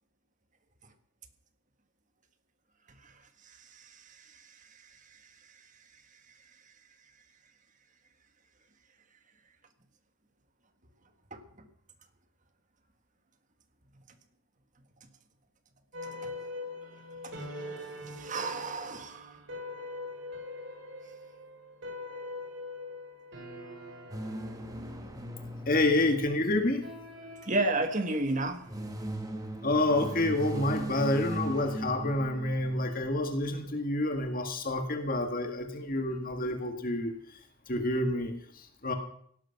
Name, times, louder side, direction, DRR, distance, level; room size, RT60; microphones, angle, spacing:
voice 1, 3.5-5.2 5.5-5.6 11.3-11.4 16.2-16.3 17.2-17.6 18.0-19.4 27.4-28.6, right 2 dB, 35° right, 7 dB, 1.8 m, -33 dB
sound 1, 15.9-30.4, left 2 dB, 50° right, 4.0 m, -44 dB
sound 2, 24.1-27.5 28.4-33.2, right 1 dB, 15° right, 1.8 m, -39 dB
voice 2, 25.7-26.8 29.6-37.4 37.7-38.9, left 1 dB, 40° left, 5 dB, 1.9 m, -28 dB
17.5 x 11.5 x 5.9 m, 0.64 s
head